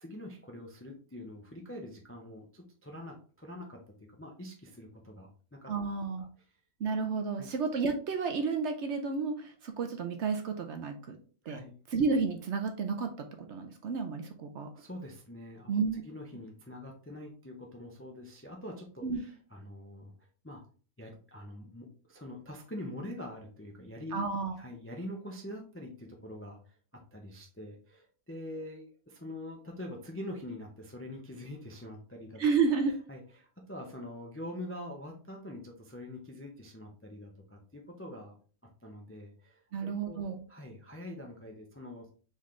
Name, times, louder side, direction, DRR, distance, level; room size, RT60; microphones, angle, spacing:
voice 1, 0.0-5.7 6.2-6.3 7.4-7.5 11.4-11.8 14.8-15.7 16.0-20.1 20.4-20.6 21.0-24.2 24.6-32.4 33.1-38.4 38.8-40.2 40.5-42.1, left 1 dB, 20° left, 1 dB, 0.4 m, -44 dB
voice 2, 5.7-6.2 6.8-11.2 11.5-11.6 11.9-14.7 15.7-16.0 19.0-19.2 24.1-24.6 32.4-32.9 39.7-40.4, right 5 dB, 60° right, 5 dB, 0.8 m, -31 dB
4.2 x 3.7 x 3.2 m, 0.40 s
omnidirectional pair, 1.5 m